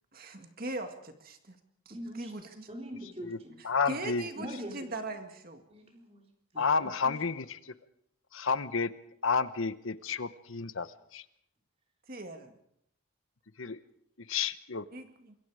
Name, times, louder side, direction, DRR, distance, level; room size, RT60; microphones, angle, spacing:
voice 1, 0.1-1.6 1.9-2.7 3.6-5.6 12.1-12.5 14.9-15.4, right 2 dB, 45° right, 6 dB, 2.0 m, -40 dB
voice 2, 1.9-2.3 2.7-3.6 4.4-4.7 5.7-6.2 6.5-7.1, equal, 30° right, 2 dB, 3.9 m, -42 dB
voice 3, 3.6-4.3 6.6-7.7 8.3-8.9 9.2-11.2 13.6-13.8 14.3-14.8, left 5 dB, 70° left, 13 dB, 1.0 m, -31 dB
27.0 x 22.5 x 4.9 m, 0.71 s
head